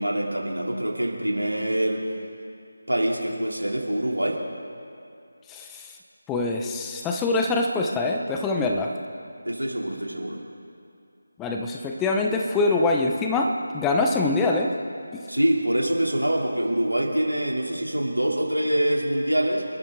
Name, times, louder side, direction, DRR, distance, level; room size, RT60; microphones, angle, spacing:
voice 1, 0.0-2.0 2.9-4.4 9.4-10.4 15.3-19.6, right 1 dB, 90° right, 0 dB, 3.1 m, -25 dB
voice 2, 5.5-5.9 6.3-8.9 11.4-14.7 15.1-15.2, left 3 dB, 10° left, 2 dB, 0.8 m, -24 dB
28.5 x 13.0 x 3.8 m, 2.5 s
figure-of-eight pair, 160°, 0 cm